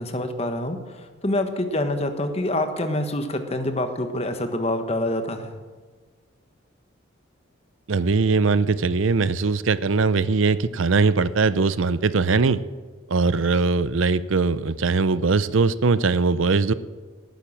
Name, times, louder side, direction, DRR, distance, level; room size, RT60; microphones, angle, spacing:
voice 1, 0.0-5.5, left 1 dB, 30° left, 7 dB, 1.3 m, -26 dB
voice 2, 7.9-12.6 13.1-16.7, right 4 dB, 75° right, 16 dB, 0.6 m, -21 dB
18.0 x 9.4 x 7.4 m, 1.5 s
head